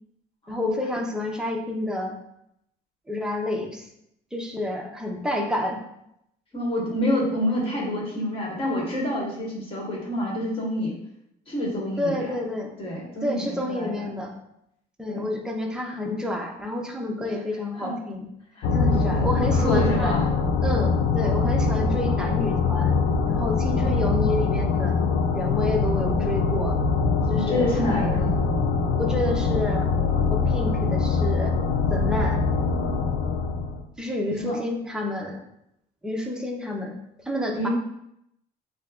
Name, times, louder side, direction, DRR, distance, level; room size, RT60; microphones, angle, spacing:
voice 1, 0.5-2.1 3.1-3.9 4.3-5.8 12.0-12.7 13.2-14.3 15.0-18.3 18.7-20.1 20.6-22.9 23.3-25.0 25.3-26.8 27.3-28.5 29.0-29.9 30.3-31.6 31.9-32.4 34.0-35.4 36.0-36.9 37.3-37.7, left 1 dB, 5° right, 0 dB, 0.7 m, -29 dB
voice 2, 6.5-10.9 11.5-12.2 12.8-14.1 15.0-15.3 17.2-17.4 17.7-18.0 18.6-20.3 23.7-24.1 27.3-28.4 34.4-34.6 37.6-37.7, left 1 dB, 35° left, -3 dB, 1.5 m, -28 dB
sound 1, 18.6-33.8, left 4 dB, 85° left, 0.5 m, -23 dB
6.4 x 2.3 x 2.4 m, 0.77 s
cardioid pair, 110°, 17 cm